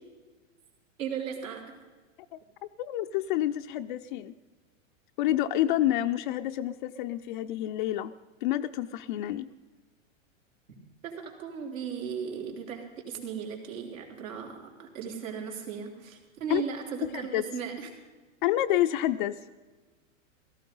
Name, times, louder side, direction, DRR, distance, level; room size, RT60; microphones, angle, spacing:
voice 1, 1.0-1.6 11.0-17.9, right 7 dB, 80° right, 0 dB, 4.1 m, -36 dB
voice 2, 2.8-4.3 5.2-8.1 8.4-9.5 16.5-16.6 17.0-17.5 18.4-19.4, left 13 dB, 40° left, 8 dB, 0.4 m, -28 dB
17.0 x 14.5 x 5.4 m, 1.3 s
supercardioid pair, 145°, 39 cm